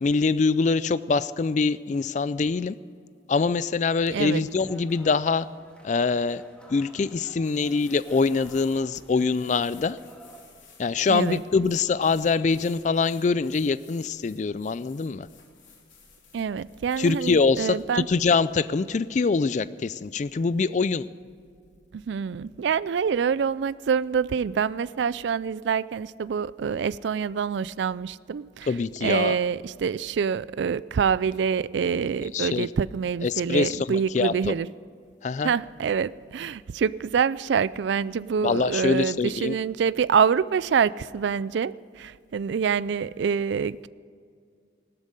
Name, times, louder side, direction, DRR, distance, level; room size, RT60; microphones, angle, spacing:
voice 1, 0.0-2.8 3.3-5.5 5.8-6.4 6.7-10.0 10.8-15.3 17.0-21.1 28.7-29.4 32.3-32.7 33.2-34.5 35.2-35.5 38.4-39.6, left 4 dB, 40° left, 17 dB, 0.3 m, -24 dB
voice 2, 4.1-4.4 11.1-11.4 16.3-18.1 21.9-28.7 29.0-34.7 35.4-43.9, right 6 dB, 70° right, 19 dB, 0.3 m, -26 dB
sound 1, 4.4-10.4, right 1 dB, 5° left, 1.8 m, -52 dB
sound 2, 7.3-18.6, left 4 dB, 85° left, 3.1 m, -55 dB
17.0 x 12.5 x 6.6 m, 2.2 s
head